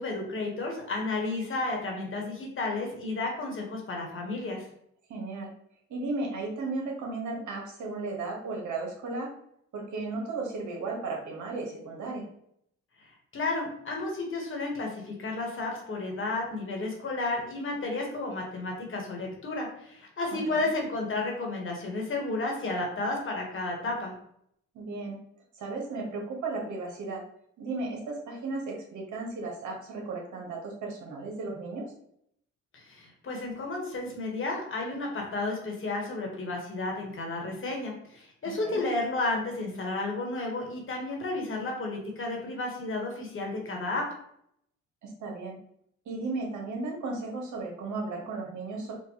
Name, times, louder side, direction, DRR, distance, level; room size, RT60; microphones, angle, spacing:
voice 1, 0.0-4.6 13.3-24.1 32.7-44.0, left 2 dB, 45° left, 0 dB, 1.3 m, -32 dB
voice 2, 5.1-5.5 5.9-9.3 9.7-12.3 20.5-20.7 24.7-25.2 25.6-27.2 27.6-31.9 38.4-38.8 45.0-45.6 46.0-48.9, right 3 dB, 70° right, 0 dB, 1.3 m, -35 dB
4.5 x 2.4 x 3.0 m, 0.71 s
cardioid pair, 90°, 30 cm